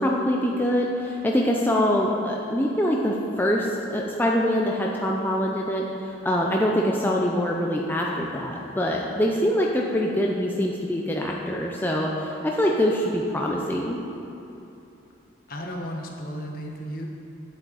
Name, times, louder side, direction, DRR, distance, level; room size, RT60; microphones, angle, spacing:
voice 1, 0.0-14.0, equal, 10° left, -2 dB, 0.5 m, -24 dB
voice 2, 15.5-17.1, equal, 50° left, 1 dB, 1.2 m, -34 dB
10.0 x 8.2 x 4.0 m, 3.0 s
head